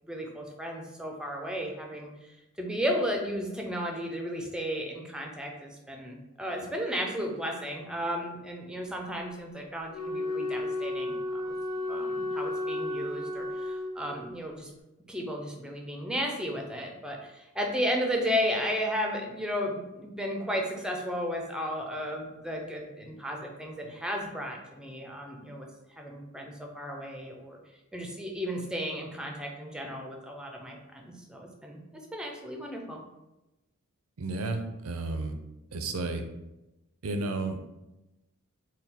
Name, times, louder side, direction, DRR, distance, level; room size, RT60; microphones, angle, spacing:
voice 1, 0.0-2.1 2.6-11.5 11.9-14.7 15.1-25.7 26.0-27.6 27.9-31.8 32.1-33.0, equal, 5° right, 1 dB, 0.5 m, -34 dB
Wind instrument woodwind instrument, 9.9-14.3, left 2 dB, 65° left, 1.3 m, -33 dB
voice 2, 34.2-35.4 35.7-36.3 37.0-37.6, right 2 dB, 80° right, 6 dB, 0.5 m, -32 dB
4.2 x 2.2 x 3.5 m, 0.97 s
head